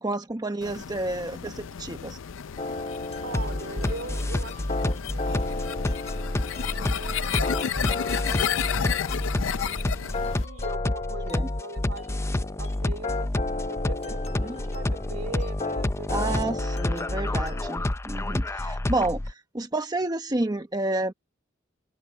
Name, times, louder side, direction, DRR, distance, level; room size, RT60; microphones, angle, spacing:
voice 1, 0.0-2.2 11.2-11.5 14.4-14.6 16.1-21.1, right 2 dB, 20° right, 1.0 m, -30 dB
sound 1, 0.6-10.4, left 8 dB, 75° left, 0.5 m, -32 dB
sound 2, 2.6-17.9, left 3 dB, 35° left, 1.0 m, -36 dB
voice 2, 3.2-6.0 6.7-8.4 9.6-13.3 13.7-16.7, right 2 dB, 75° right, 2.6 m, -41 dB
sound 3, 3.3-19.3, left 1 dB, 15° left, 0.4 m, -29 dB
open air
head